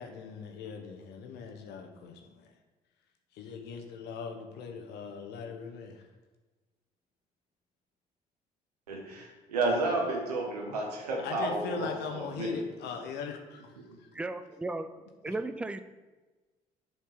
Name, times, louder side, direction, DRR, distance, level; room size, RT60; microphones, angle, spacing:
voice 1, 0.0-2.6 3.3-6.1 11.2-14.1 15.3-15.4, left 5 dB, 60° left, 3 dB, 0.9 m, -40 dB
voice 2, 8.9-12.6 13.9-14.0, right 2 dB, 80° right, 1 dB, 1.2 m, -32 dB
voice 3, 14.1-14.9 15.2-15.8, right 2 dB, 5° right, 11 dB, 0.4 m, -35 dB
7.2 x 4.5 x 5.0 m, 1.2 s
figure-of-eight pair, 50°, 20 cm